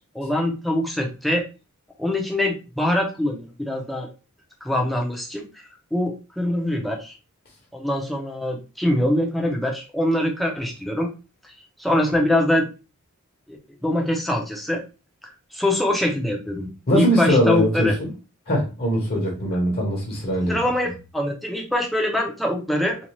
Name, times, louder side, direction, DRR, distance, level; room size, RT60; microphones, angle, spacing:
voice 1, 0.1-1.4 2.0-4.1 4.6-7.1 7.7-11.1 11.4-11.5 11.8-12.7 13.5-14.8 15.5-16.7 17.0-17.9 20.5-23.0, left 1 dB, ahead, 0.6 m, -24 dB
voice 2, 16.9-18.1 18.5-20.6, equal, 45° left, 0.9 m, -21 dB
2.6 x 2.3 x 3.0 m
head